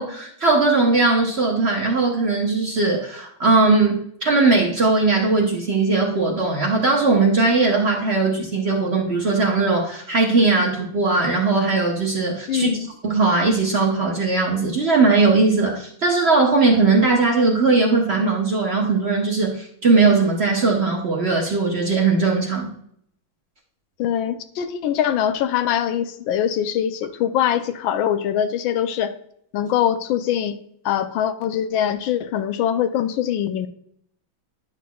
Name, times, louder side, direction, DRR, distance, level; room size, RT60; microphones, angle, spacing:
voice 1, 0.0-12.7 13.0-22.7, right 3 dB, 55° right, -1 dB, 0.7 m, -19 dB
voice 2, 12.5-12.9 24.0-29.1 29.5-30.6 30.8-33.7, left 10 dB, 75° left, 10 dB, 1.3 m, -23 dB
10.5 x 6.0 x 2.3 m, 0.69 s
omnidirectional pair, 2.3 m